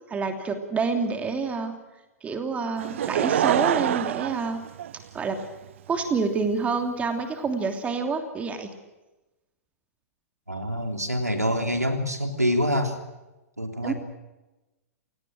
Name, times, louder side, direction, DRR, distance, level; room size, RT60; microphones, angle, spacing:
voice 1, 0.1-1.7 2.2-4.6 5.1-5.4 5.9-8.7 13.8-13.9, right 4 dB, 15° right, 6 dB, 2.9 m, -27 dB
Laughter / Crowd, 2.8-5.4 6.1-6.2, right 11 dB, 55° right, 0.7 m, -25 dB
voice 2, 10.5-13.0 13.6-13.9, equal, 85° right, 5 dB, 3.4 m, -26 dB
29.0 x 18.5 x 6.4 m, 1.1 s
figure-of-eight pair, 105°, 8 cm